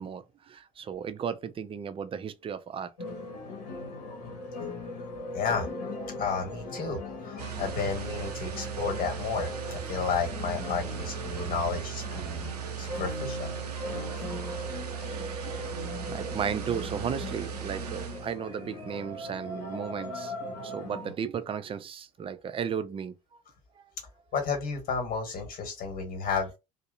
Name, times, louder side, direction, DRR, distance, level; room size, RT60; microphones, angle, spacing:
voice 1, 0.0-2.9 7.5-7.6 13.6-13.7 14.8-15.7 16.1-20.3 20.6-23.1, right 7 dB, 30° right, 0.4 m, -35 dB
sound 1, 3.0-21.2, left 2 dB, 75° left, 0.8 m, -39 dB
voice 2, 5.3-12.5 12.8-13.5 24.3-26.5, left 5 dB, 45° left, 1.3 m, -32 dB
sound 2, 7.4-18.4, right 10 dB, 90° right, 0.4 m, -38 dB
2.6 x 2.0 x 2.4 m
hypercardioid pair, 60°, 20 cm